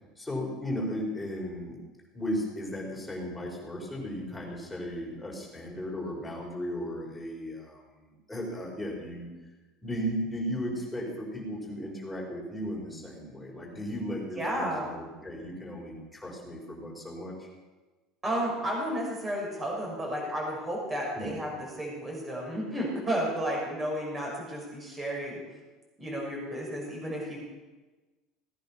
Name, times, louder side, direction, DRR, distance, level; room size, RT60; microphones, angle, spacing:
voice 1, 0.2-1.8 2.1-9.3 9.8-17.5 21.1-21.4, equal, 5° left, -3 dB, 5.0 m, -36 dB
voice 2, 14.4-14.9 18.2-21.5 21.8-25.4 26.0-27.4, right 1 dB, 20° right, -2 dB, 6.3 m, -32 dB
17.5 x 10.5 x 5.9 m, 1.2 s
cardioid pair, 135°, 0 cm